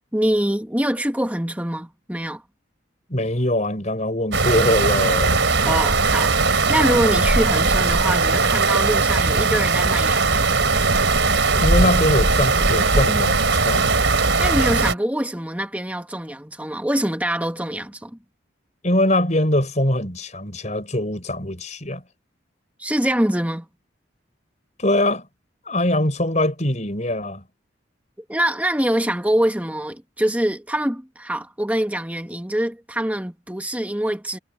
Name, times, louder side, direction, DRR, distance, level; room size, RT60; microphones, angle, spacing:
voice 1, 0.1-2.4 5.6-10.6 14.4-18.2 22.8-23.7 28.3-34.4, right 1 dB, 10° right, 1.7 m, -24 dB
voice 2, 3.1-5.5 11.6-14.0 18.8-22.0 24.8-25.3 25.6-27.4, left 1 dB, 35° left, 5.5 m, -22 dB
sound 1, 4.3-14.9, right 3 dB, 70° right, 4.0 m, -19 dB
head